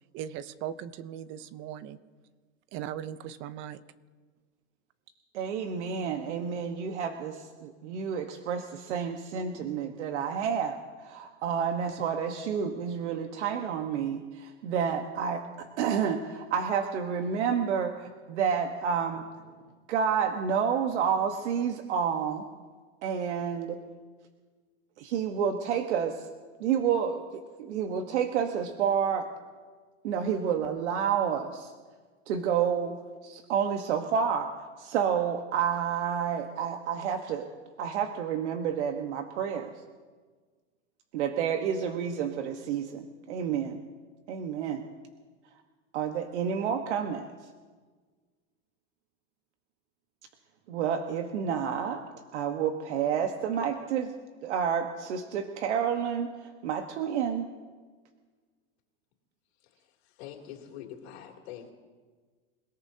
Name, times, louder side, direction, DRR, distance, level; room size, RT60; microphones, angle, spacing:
voice 1, 0.1-2.0 2.7-3.8, right 10 dB, 35° right, 15 dB, 0.7 m, -38 dB
voice 2, 5.3-19.3 19.9-22.4 23.0-23.8 25.0-26.3 26.6-29.3 30.0-31.7 32.3-33.0 33.2-34.5 34.8-37.5 37.8-39.7 41.1-43.8 44.3-44.8 45.9-47.3 50.7-52.0 52.3-54.1 54.4-57.5, right 7 dB, 75° right, 5 dB, 1.4 m, -29 dB
voice 3, 59.6-61.7, left 10 dB, 60° left, -1 dB, 3.0 m, -45 dB
28.0 x 18.0 x 2.8 m, 1.5 s
supercardioid pair, 145°, 35 cm